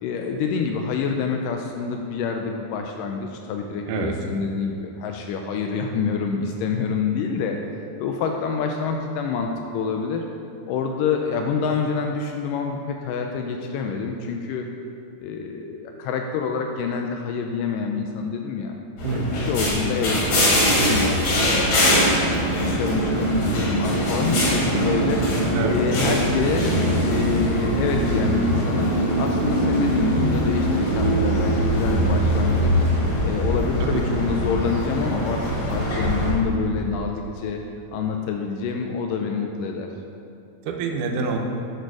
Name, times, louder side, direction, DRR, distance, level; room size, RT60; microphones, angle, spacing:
voice 1, 0.0-7.6 8.0-10.3 10.7-14.7 15.2-18.8 19.1-25.4 25.7-26.7 27.1-32.7 33.2-37.6 37.9-39.9, left 5 dB, 90° left, 3 dB, 1.9 m, -27 dB
sound 1, 19.0-36.3, equal, 55° left, 4.1 m, -22 dB
voice 2, 19.0-19.5 25.5-25.8 33.8-34.0 40.7-41.4, right 4 dB, 70° right, 1 dB, 2.1 m, -26 dB
10.5 x 6.7 x 4.7 m, 2.6 s
omnidirectional pair, 4.4 m